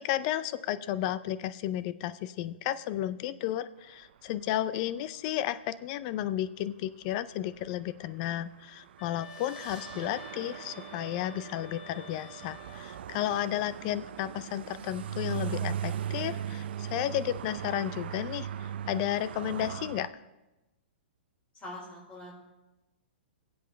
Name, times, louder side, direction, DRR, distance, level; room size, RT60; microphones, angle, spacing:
voice 1, 0.0-20.1, left 12 dB, 40° left, 15 dB, 0.5 m, -33 dB
sound 1, 7.0-7.1 7.5-20.1, right 9 dB, 65° right, 0.5 m, -39 dB
sound 2, 9.0-13.1, left 3 dB, 85° left, 5.2 m, -49 dB
sound 3, 9.2-12.4, right 4 dB, 15° right, 1.9 m, -58 dB
voice 2, 21.5-22.4, left 1 dB, 20° left, -5 dB, 4.9 m, -43 dB
22.5 x 8.0 x 3.3 m, 1.0 s
hypercardioid pair, 140°, 6 cm